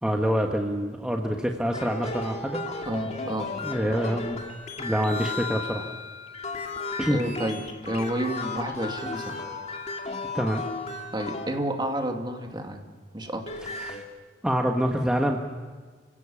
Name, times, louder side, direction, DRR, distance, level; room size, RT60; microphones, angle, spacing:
voice 1, 0.0-2.6 3.6-4.4 4.8-5.9 7.0-7.2 10.3-10.6 13.6-14.0 14.4-15.4, equal, 5° right, 1 dB, 1.4 m, -26 dB
sound 1, 1.7-12.2 13.3-14.0, left 3 dB, 40° left, 2.4 m, -35 dB
voice 2, 2.8-3.5 7.1-9.4 11.1-12.8 13.1-13.4, right 1 dB, 25° right, 3 dB, 2.5 m, -30 dB
30.0 x 17.0 x 7.2 m, 1.5 s
head